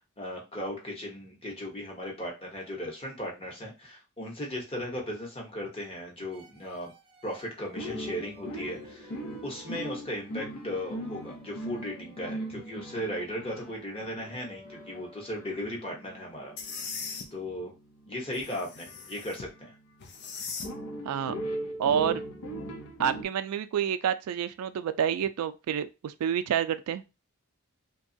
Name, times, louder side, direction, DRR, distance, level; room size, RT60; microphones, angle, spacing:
voice 1, 0.2-6.9 7.2-9.2 9.4-16.5 17.3-17.7 18.1-19.7, left 1 dB, 25° left, 0.9 m, -37 dB
sound 1, 6.3-15.6, equal, 25° right, 0.5 m, -54 dB
sound 2, 7.8-19.9 20.6-23.2, right 1 dB, 85° left, 0.7 m, -40 dB
sound 3, 16.6-17.3 18.3-19.5 20.0-20.7, left 5 dB, 50° left, 0.4 m, -39 dB
voice 2, 21.0-21.3 21.8-22.2 23.0-27.0, right 8 dB, 90° right, 0.3 m, -28 dB
2.8 x 2.2 x 2.6 m
head